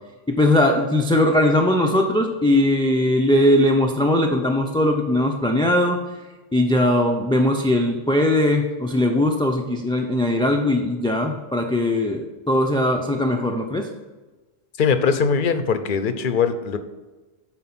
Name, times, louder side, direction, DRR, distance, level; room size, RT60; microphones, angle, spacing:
voice 1, 0.3-6.0 6.5-13.9, left 1 dB, 5° left, 2 dB, 0.4 m, -20 dB
voice 2, 14.8-16.8, left 6 dB, 55° left, 10 dB, 0.8 m, -21 dB
9.7 x 4.4 x 6.0 m, 1.2 s
omnidirectional pair, 1.1 m